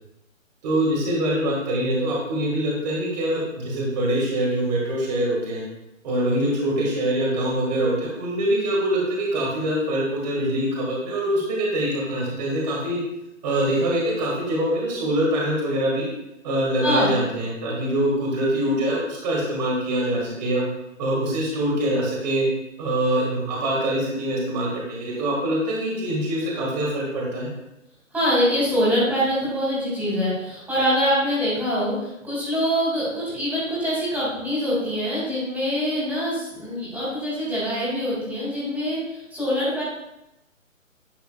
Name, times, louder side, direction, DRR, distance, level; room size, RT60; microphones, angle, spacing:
voice 1, 0.6-5.6 6.0-13.0 13.4-16.1 16.4-20.6 21.0-22.5 22.8-27.5, right 1 dB, 30° right, -3 dB, 2.0 m, -24 dB
voice 2, 28.1-39.8, equal, 5° right, -8 dB, 2.5 m, -24 dB
10.5 x 6.9 x 2.4 m, 0.90 s
figure-of-eight pair, 140°, 40 cm